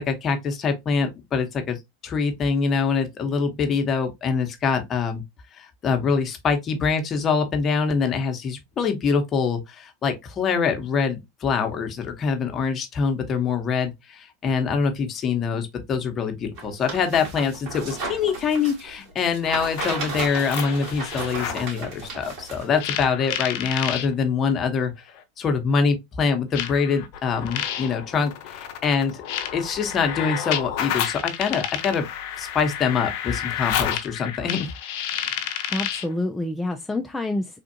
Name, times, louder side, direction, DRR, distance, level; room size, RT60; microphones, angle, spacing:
voice 1, 0.0-5.2 5.6-24.9 25.4-29.2 29.5-32.1 32.4-34.7, left 5 dB, 35° left, 0.9 m, -24 dB
sound 1, 16.6-22.7 23.0-23.1, right 3 dB, 50° right, 2.1 m, -34 dB
sound 2, 19.6-21.7 22.8-24.1 25.2-25.3 26.5-36.1, left 10 dB, 60° left, 0.6 m, -30 dB
voice 2, 35.7-37.6, left 2 dB, 5° left, 0.4 m, -28 dB
3.5 x 2.4 x 2.7 m
hypercardioid pair, 95°, 0 cm